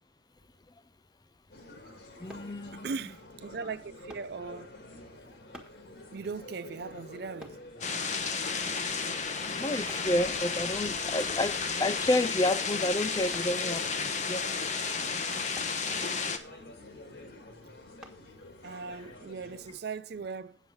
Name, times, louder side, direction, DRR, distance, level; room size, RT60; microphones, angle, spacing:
sound 1, 1.5-19.8, left 2 dB, 60° left, 2.1 m, -48 dB
voice 1, 2.2-2.9 9.5-14.5, left 1 dB, 20° left, 0.4 m, -30 dB
sound 2, 2.3-2.5 4.1-4.3 5.5-5.8 7.4-7.6 8.7-8.9 9.9-10.1 11.3-11.5 13.3-13.6 15.5-15.8 18.0-18.2 18.8-18.9, equal, 5° right, 1.4 m, -49 dB
voice 2, 2.7-4.8 6.1-7.6 18.6-20.6, right 4 dB, 55° right, 0.5 m, -39 dB
sound 3, 7.8-16.4, left 5 dB, 40° left, 0.9 m, -32 dB
9.2 x 7.2 x 5.4 m
head